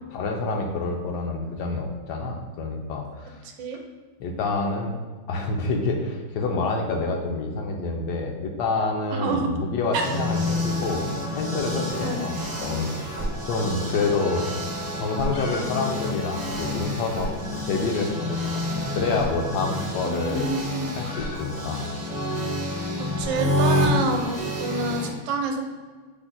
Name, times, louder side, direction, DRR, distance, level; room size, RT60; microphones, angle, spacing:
voice 1, 0.1-3.4 4.2-4.9 5.3-11.0 11.3-14.5 14.9-17.3 17.6-18.6 18.9-20.5 21.0-21.8, left 3 dB, 75° left, 1 dB, 1.1 m, -27 dB
voice 2, 9.1-9.5 9.9-10.0 12.0-12.2 20.0-21.1 23.0-25.6, right 4 dB, 80° right, 3 dB, 1.2 m, -28 dB
sound 1, 9.9-25.1, left 1 dB, 50° right, 0.5 m, -28 dB
sound 2, 12.7-14.1 14.3-14.4 14.9-15.7 15.9-16.0 16.3-16.4 16.9-17.1 18.2-18.4 19.5-23.8, left 2 dB, 55° left, 0.7 m, -43 dB
5.8 x 2.1 x 3.9 m, 1.4 s
omnidirectional pair, 2.0 m